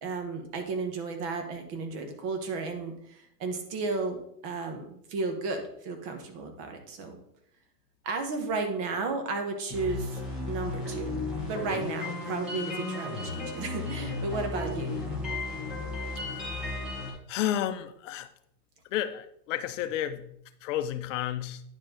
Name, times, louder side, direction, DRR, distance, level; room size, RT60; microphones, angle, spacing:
voice 1, 0.0-7.2 8.0-11.2 11.5-14.9, right 3 dB, 35° right, 5 dB, 1.3 m, -33 dB
sound 1, 9.7-17.1, left 3 dB, ahead, 0.3 m, -34 dB
voice 2, 16.3-16.8 17.3-18.3 18.9-21.6, left 11 dB, 50° left, 11 dB, 0.7 m, -32 dB
9.7 x 4.6 x 3.8 m, 0.72 s
supercardioid pair, 145°, 49 cm